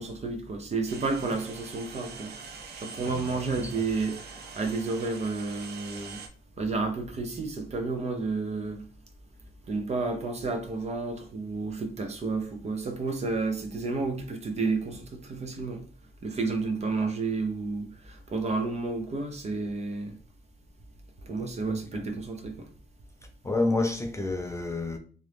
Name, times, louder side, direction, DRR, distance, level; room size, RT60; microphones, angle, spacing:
voice 1, 0.0-2.3 2.8-6.2 6.6-8.8 9.7-15.8 16.2-20.2 21.2-22.7, right 3 dB, 45° right, 0.6 m, -31 dB
sound 1, 0.9-6.3, right 5 dB, 90° right, 0.5 m, -44 dB
voice 2, 3.0-3.5 21.6-22.0 23.4-25.0, left 2 dB, 20° left, 0.3 m, -29 dB
2.9 x 2.5 x 3.3 m
wide cardioid pair, 155°, 16 cm